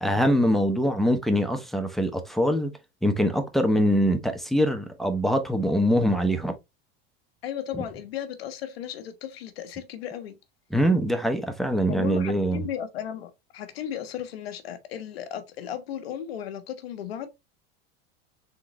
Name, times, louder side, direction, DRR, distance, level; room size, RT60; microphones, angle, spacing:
voice 1, 0.0-2.7 3.0-6.5 7.7-7.8 10.7-12.6, equal, ahead, 0.7 m, -23 dB
voice 2, 7.4-10.4 11.9-17.3, left 10 dB, 85° left, 1.0 m, -35 dB
3.8 x 3.8 x 3.0 m
hypercardioid pair, 105°, 30 cm